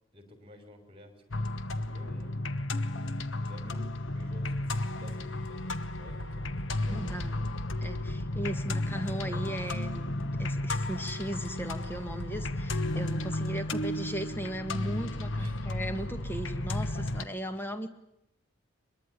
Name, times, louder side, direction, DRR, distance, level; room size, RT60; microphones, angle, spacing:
voice 1, 0.1-1.5 1.7-2.4 3.4-7.5 8.3-8.6 9.0-9.9 13.5-13.9 15.4-15.7 17.1-17.6, equal, 30° right, 7 dB, 5.6 m, -52 dB
sound 1, 1.3-17.2, left 1 dB, 70° left, 1.3 m, -33 dB
voice 2, 6.9-7.3 7.8-17.9, right 1 dB, 10° left, 7 dB, 1.8 m, -37 dB
23.5 x 23.0 x 10.0 m, 0.80 s
head